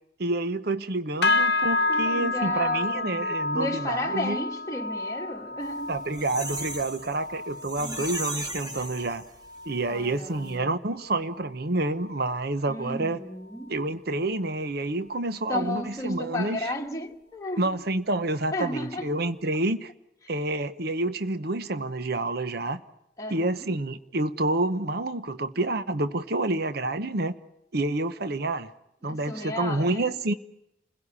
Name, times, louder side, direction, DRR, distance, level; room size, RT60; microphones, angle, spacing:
voice 1, 0.2-4.4 5.9-9.2 9.7-13.2 13.7-16.7 17.6-19.9 20.3-22.8 23.3-27.4 27.7-28.7 29.0-30.3, right 2 dB, 55° right, 0.9 m, -28 dB
sound 1, 1.2-10.8 11.1-11.5 11.9-12.2 12.8-12.9, left 3 dB, 60° left, 0.9 m, -30 dB
voice 2, 1.9-6.0 7.8-8.1 9.9-10.8 12.7-13.8 15.5-17.7 18.5-19.1 23.2-23.7 29.1-30.1, left 1 dB, 15° left, 1.6 m, -34 dB
sound 2, 5.7-9.6 10.0-10.1 10.3-10.5, right 1 dB, 20° right, 2.2 m, -37 dB
28.5 x 16.5 x 9.7 m
head